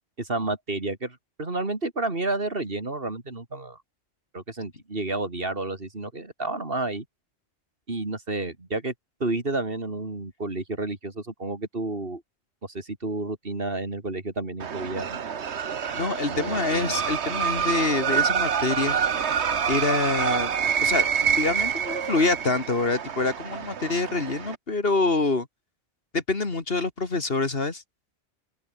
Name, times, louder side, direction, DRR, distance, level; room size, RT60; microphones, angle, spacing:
voice 1, 0.2-3.8 4.3-7.0 7.9-8.9 9.2-12.2 12.7-15.2 16.3-17.0, right 2 dB, 55° right, 3.3 m, -31 dB
sound 1, 14.6-24.6, right 7 dB, 75° right, 1.4 m, -27 dB
voice 2, 15.9-19.0 19.7-20.5 20.8-25.5 26.1-27.8, left 3 dB, 60° left, 2.6 m, -26 dB
open air
omnidirectional pair, 1.2 m